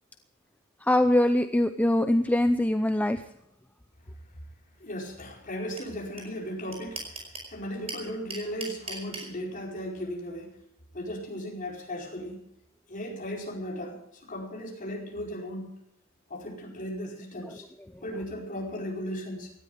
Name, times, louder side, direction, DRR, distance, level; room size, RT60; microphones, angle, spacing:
voice 1, 0.9-3.2, left 1 dB, 5° left, 8 dB, 0.6 m, -23 dB
voice 2, 4.8-10.5 10.9-12.4 12.9-15.7 16.3-17.7 18.0-19.5, equal, 40° left, -1 dB, 4.9 m, -36 dB
sound 1, 5.8-5.9 6.2-6.3 6.5-7.5 7.9-9.3, right 3 dB, 30° right, 5.1 m, -37 dB
18.0 x 13.0 x 5.1 m, 0.79 s
head